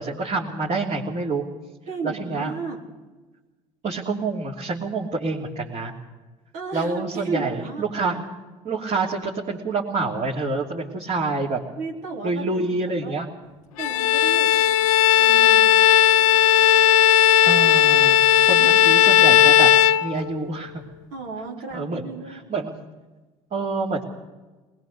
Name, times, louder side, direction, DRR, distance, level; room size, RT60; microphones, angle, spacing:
voice 1, 0.0-1.4 2.0-2.5 3.8-5.9 6.7-8.2 8.6-11.6 12.2-13.3 17.4-18.2 18.5-19.7 20.0-20.8 21.7-22.7 23.5-24.0, right 3 dB, 45° right, -3 dB, 3.2 m, -27 dB
voice 2, 1.9-2.8 6.5-7.8 11.8-12.7 13.0-13.1 13.8-14.8 15.2-15.9 18.3-18.9 21.1-22.5, right 4 dB, 80° right, -3 dB, 4.4 m, -34 dB
Bowed string instrument, 13.8-20.6, left 10 dB, 90° left, 0.7 m, -16 dB
21.5 x 20.5 x 6.8 m, 1.2 s
hypercardioid pair, 75°, 17 cm